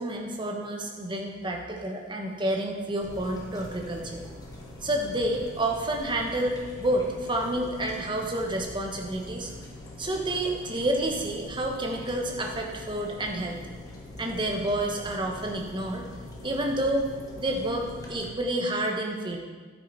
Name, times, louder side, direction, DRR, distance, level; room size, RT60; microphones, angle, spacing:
voice 1, 0.0-4.2 4.8-9.5 10.0-13.6 14.2-16.0 16.4-17.0 17.4-19.4, right 1 dB, 25° right, 1 dB, 1.2 m, -29 dB
sound 1, 3.0-18.3, left 1 dB, 20° left, 1.4 m, -43 dB
10.0 x 9.2 x 4.2 m, 1.5 s
head